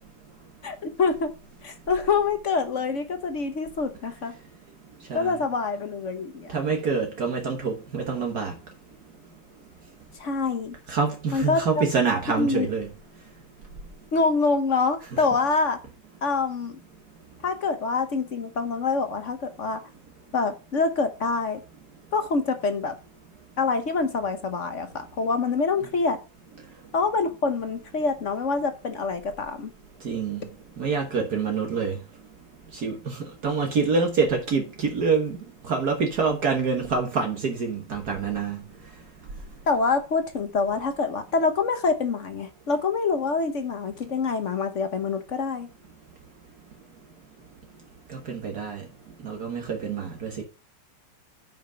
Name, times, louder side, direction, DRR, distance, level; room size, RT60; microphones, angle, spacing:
voice 1, 0.6-1.3 1.6-4.3 5.1-6.5 10.2-10.8 11.3-11.8 12.3-12.7 14.1-15.8 16.2-16.8 17.4-19.8 20.3-21.6 22.1-22.9 23.6-26.2 26.9-29.7 39.7-45.7, left 4 dB, 50° left, 1.1 m, -26 dB
voice 2, 6.5-8.5 10.9-12.9 15.1-15.2 30.0-30.4 30.8-32.0 32.7-35.4 35.7-38.6 48.1-48.9 49.2-50.4, right 5 dB, 60° right, 1.9 m, -26 dB
8.8 x 5.3 x 5.7 m
omnidirectional pair, 1.9 m